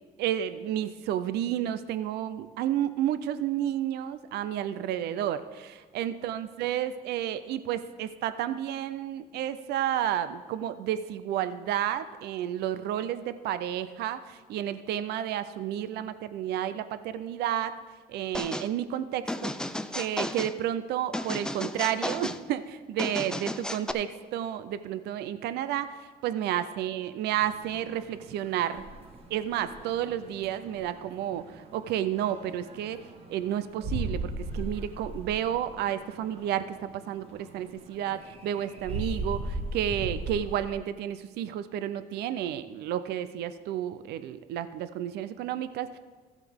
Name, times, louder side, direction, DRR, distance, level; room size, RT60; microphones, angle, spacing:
voice 1, 0.2-17.7 18.1-19.5 19.9-28.8 29.3-33.0 33.3-46.0, right 11 dB, 75° right, 13 dB, 0.5 m, -31 dB
sound 1, 18.3-18.7 19.3-20.5 21.1-22.4 23.0-23.9, left 1 dB, 5° left, 0.4 m, -33 dB
sound 2, 27.4-40.7, right 2 dB, 35° right, 1.4 m, -39 dB
14.5 x 8.1 x 3.6 m, 1.4 s
cardioid pair, 110°, 17 cm